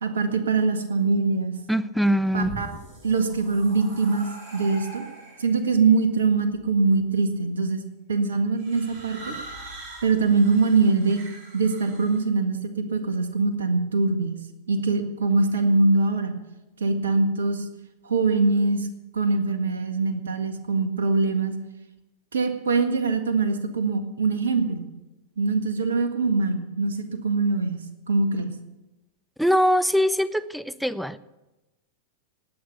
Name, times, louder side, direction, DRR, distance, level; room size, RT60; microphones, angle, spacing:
voice 1, 0.0-1.5 2.3-2.7 3.0-5.0 5.4-7.8 8.1-9.3 10.0-11.2 11.5-14.4 14.7-16.4 16.8-17.6 18.0-18.9 19.1-21.5 22.3-24.8 25.4-27.8 28.1-28.5, right 3 dB, 65° right, 8 dB, 1.7 m, -23 dB
voice 2, 1.7-2.6 29.4-31.2, equal, ahead, 16 dB, 0.5 m, -22 dB
sound 1, 2.2-5.6 6.5-7.0 8.6-12.2, right 2 dB, 40° right, 7.1 m, -42 dB
19.5 x 8.7 x 6.9 m, 1.0 s
figure-of-eight pair, 90°, 0 cm